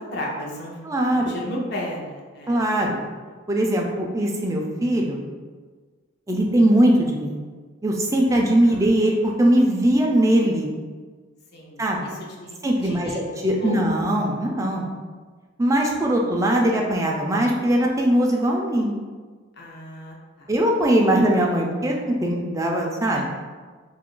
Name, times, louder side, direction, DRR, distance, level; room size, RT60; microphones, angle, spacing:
voice 1, 0.0-0.7 1.1-2.6 11.5-12.1 12.4-12.5 12.8-13.8 19.6-20.5 23.1-23.2, left 1 dB, 55° left, -3 dB, 0.6 m, -34 dB
voice 2, 0.8-1.4 2.5-3.0 3.5-5.2 6.3-7.4 7.8-10.7 11.8-12.1 12.6-13.1 13.4-14.9 15.6-18.9 20.5-23.2, right 1 dB, 15° right, 0 dB, 0.3 m, -20 dB
2.6 x 2.4 x 3.7 m, 1.5 s
head